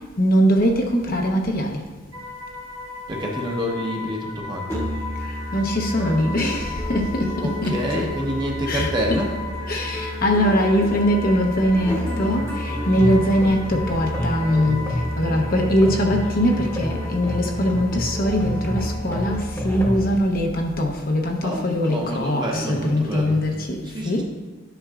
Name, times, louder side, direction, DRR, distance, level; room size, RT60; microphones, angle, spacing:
voice 1, 0.2-1.8 5.5-7.8 8.7-9.2 9.7-14.8 15.2-23.8 24.0-24.2, equal, 45° left, 2 dB, 0.8 m, -21 dB
sound 1, 2.1-19.4, left 4 dB, 80° right, 1.2 m, -37 dB
voice 2, 3.1-4.8 7.4-9.4 21.4-23.4 23.8-24.2, equal, 20° right, -1 dB, 0.9 m, -28 dB
Musical instrument, 4.7-20.2, equal, 15° left, 1.1 m, -29 dB
sound 2, 9.6-21.7, left 5 dB, 55° right, 1.6 m, -41 dB
10.0 x 6.1 x 2.4 m, 1.3 s
head